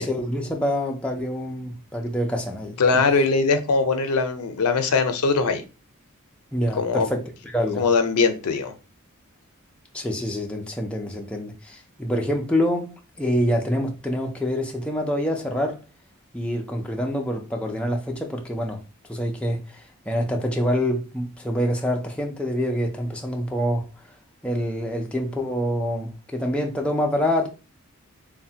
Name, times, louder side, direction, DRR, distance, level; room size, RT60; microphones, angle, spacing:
voice 1, 0.0-2.8 6.5-7.8 9.9-15.8 16.3-18.8 19.1-23.9 24.4-27.5, equal, 5° left, 0.4 m, -26 dB
voice 2, 2.8-5.6 6.8-7.1 7.8-8.7, left 4 dB, 90° left, 0.5 m, -21 dB
3.2 x 2.1 x 2.7 m
head